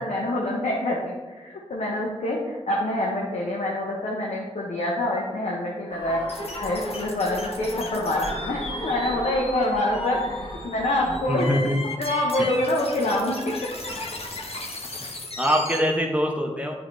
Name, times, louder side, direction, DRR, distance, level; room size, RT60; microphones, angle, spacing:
voice 1, 0.0-6.2 6.6-11.5 12.0-13.4 15.7-15.8, left 1 dB, 85° left, -3 dB, 1.0 m, -26 dB
sound 1, 5.9-11.2, left 1 dB, 40° left, 2.1 m, -36 dB
sound 2, 6.3-15.8, left 2 dB, 60° left, 1.3 m, -36 dB
voice 2, 11.3-11.8 12.4-12.5 15.4-16.7, equal, 10° right, 0 dB, 0.9 m, -23 dB
10.5 x 3.9 x 3.3 m, 1.3 s
cardioid pair, 40°, 12 cm